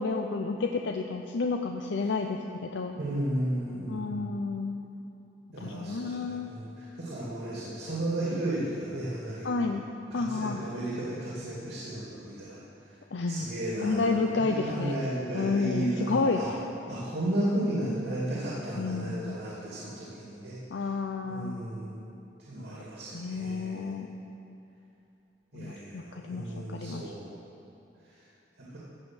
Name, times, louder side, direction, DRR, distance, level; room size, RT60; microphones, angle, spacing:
voice 1, 0.0-2.4 2.7-3.0 3.9-4.8 5.6-6.5 9.4-9.8 10.1-10.6 13.1-13.5 13.8-15.0 15.3-16.4 18.8-19.4 20.7-21.6 23.1-24.1 25.5-27.1, left 3 dB, 85° left, 3 dB, 0.6 m, -30 dB
voice 2, 2.9-4.3 5.5-9.7 10.1-12.6 12.8-13.0 13.3-16.5 16.9-20.9 21.2-22.0 22.5-23.9 25.5-27.3 28.7-28.8, right 1 dB, 75° right, -7 dB, 2.6 m, -34 dB
14.5 x 5.4 x 7.9 m, 2.9 s
head